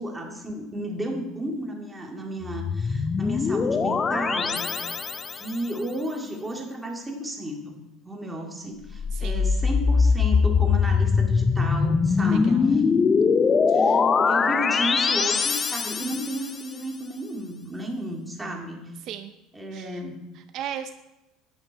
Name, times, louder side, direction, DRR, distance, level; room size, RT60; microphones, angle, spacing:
voice 1, 0.0-4.7 5.3-7.8 8.0-12.8 13.7-18.8 19.5-20.2, right 1 dB, 10° right, 0 dB, 2.1 m, -33 dB
sound 1, 2.4-5.6 8.9-16.6, left 5 dB, 25° left, 0.5 m, -22 dB
voice 2, 9.1-9.5 12.2-12.8 13.7-14.0 19.0-19.3 19.7-20.0 20.3-20.9, right 9 dB, 55° right, 8 dB, 0.6 m, -37 dB
10.5 x 9.6 x 4.6 m, 0.98 s
cardioid pair, 120°, 0 cm